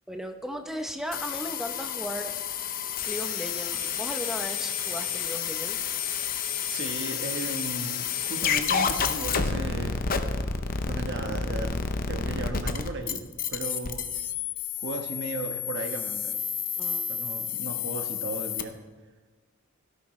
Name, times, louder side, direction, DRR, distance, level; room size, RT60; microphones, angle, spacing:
voice 1, 0.1-2.3 3.0-5.8 16.8-17.1, equal, ahead, 5 dB, 0.8 m, -36 dB
sound 1, 1.1-18.6, left 6 dB, 40° left, 0.7 m, -30 dB
voice 2, 6.7-10.0 10.8-11.8 12.1-14.0 14.8-16.3 17.1-18.8, right 2 dB, 55° right, 4 dB, 1.3 m, -35 dB
17.0 x 13.0 x 3.2 m, 1.3 s
head